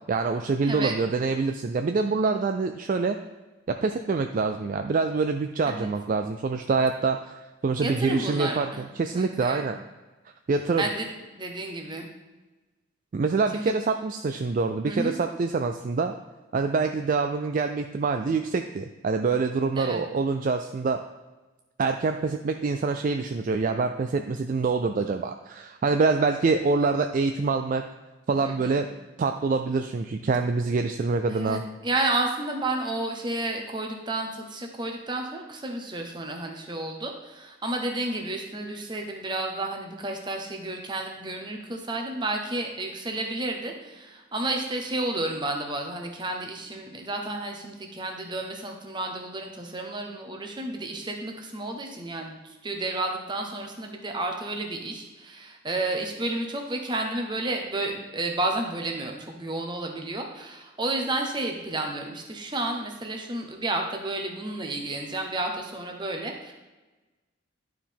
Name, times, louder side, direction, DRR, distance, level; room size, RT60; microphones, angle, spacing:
voice 1, 0.1-3.2 3.7-9.8 10.5-10.9 13.1-16.1 16.5-21.0 21.8-27.8 28.3-28.9 29.2-31.6, right 4 dB, 40° right, 6 dB, 0.3 m, -25 dB
voice 2, 0.6-0.9 5.7-5.9 7.8-8.8 9.1-9.6 10.8-11.1 11.4-12.1 13.5-13.7 14.9-15.2 19.8-20.0 28.4-28.8 31.3-66.5, right 2 dB, 25° right, 2 dB, 0.9 m, -31 dB
11.0 x 4.7 x 3.6 m, 1.2 s
head